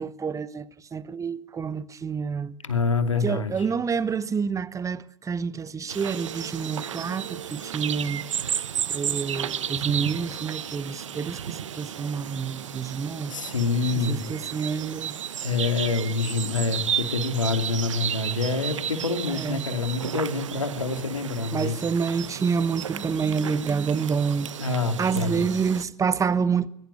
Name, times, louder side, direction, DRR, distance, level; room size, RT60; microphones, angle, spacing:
voice 1, 0.0-2.5 3.2-8.2 8.9-13.3 14.0-15.1 19.3-19.7 21.5-24.5 25.0-26.7, right 6 dB, 20° right, 1.1 m, -28 dB
voice 2, 2.6-3.7 13.3-14.2 15.4-21.8 24.6-25.5, left 4 dB, 85° left, 2.6 m, -26 dB
sound 1, 5.9-25.8, right 9 dB, 80° right, 1.0 m, -33 dB
21.5 x 20.5 x 9.9 m
figure-of-eight pair, 85°, 16 cm